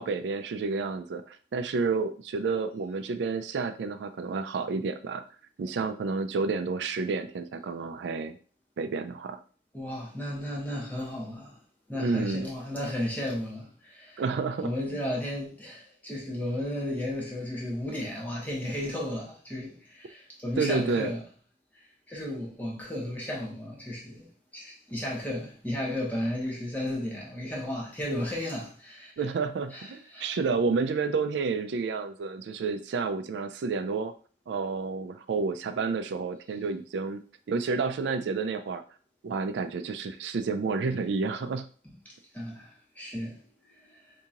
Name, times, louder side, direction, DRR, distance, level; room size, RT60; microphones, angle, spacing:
voice 1, 0.0-5.2 5.6-8.4 8.8-9.4 12.0-12.5 14.2-14.7 20.6-21.1 29.2-34.1 34.5-37.2 37.5-38.8 39.2-41.7, right 4 dB, 85° right, 0.4 m, -30 dB
voice 2, 9.7-11.6 11.9-14.2 14.6-21.2 21.7-29.1 29.7-30.4 42.0-44.1, left 1 dB, 10° left, 0.9 m, -34 dB
2.8 x 2.7 x 3.6 m
head